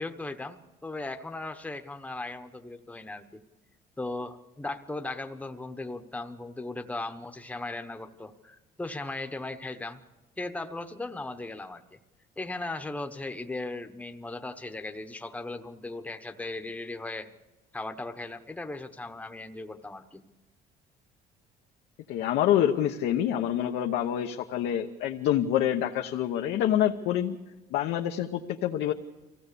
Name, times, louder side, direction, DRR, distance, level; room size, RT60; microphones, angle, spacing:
voice 1, 0.0-3.4 4.0-10.0 10.4-12.0 12.4-17.3 17.7-20.2, left 2 dB, 10° left, 7 dB, 1.0 m, -37 dB
voice 2, 22.1-27.4 27.7-28.9, left 11 dB, 85° left, 2 dB, 1.0 m, -26 dB
24.0 x 16.0 x 6.8 m, 1.1 s
cardioid pair, 110°, 17 cm